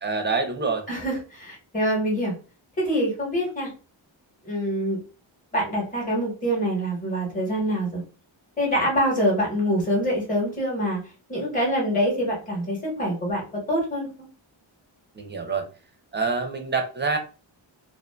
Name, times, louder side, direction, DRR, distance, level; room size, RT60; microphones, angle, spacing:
voice 1, 0.0-0.9 15.1-15.7 16.1-17.2, right 4 dB, 25° right, 5 dB, 0.4 m, -26 dB
voice 2, 0.9-2.3 2.8-3.7 4.4-5.0 5.5-8.0 8.6-11.0 11.3-14.1, equal, 15° left, -2 dB, 1.1 m, -25 dB
2.5 x 2.4 x 2.2 m, 0.35 s
wide cardioid pair, 135°, 47 cm